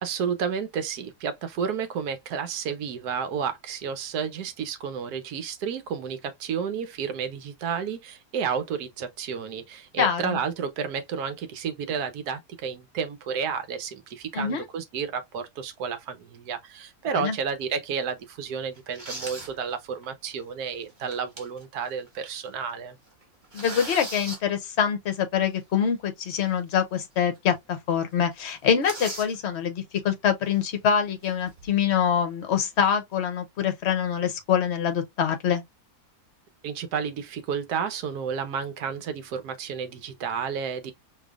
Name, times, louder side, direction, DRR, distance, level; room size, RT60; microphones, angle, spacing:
voice 1, 0.0-23.0 36.6-40.9, right 6 dB, 75° right, 1.3 m, -31 dB
voice 2, 10.0-10.4 14.3-14.6 17.1-17.4 23.5-35.6, left 8 dB, 55° left, 0.9 m, -25 dB
sound 1, 17.4-17.6 18.2-18.3 18.7-19.6 20.0-20.1 20.9-21.7 22.1-22.2 22.4-22.7 23.1-24.4 26.4-26.5 27.0-27.1 27.3-27.4 27.7-27.9 28.2-29.4 30.4-30.7 31.2-31.8, right 2 dB, 30° right, 1.5 m, -38 dB
5.3 x 2.9 x 2.4 m
omnidirectional pair, 1.7 m